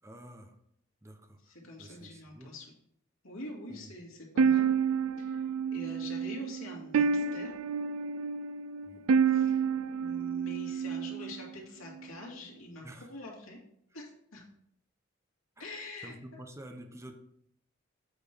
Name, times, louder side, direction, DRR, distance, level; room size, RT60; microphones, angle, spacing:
voice 1, 0.0-0.6 1.0-2.5 3.7-3.9 8.8-9.0 12.8-13.1 15.6-15.7 16.0-17.1, right 1 dB, 15° right, 5 dB, 0.8 m, -49 dB
voice 2, 1.4-2.7 3.2-4.7 5.2-5.4 5.7-7.5 9.2-9.6 10.0-13.6 13.9-14.4 15.6-16.4, left 1 dB, 85° left, -1 dB, 2.4 m, -45 dB
sound 1, 4.4-11.5, right 6 dB, 75° right, 0.4 m, -29 dB
8.1 x 4.5 x 5.1 m, 0.72 s
head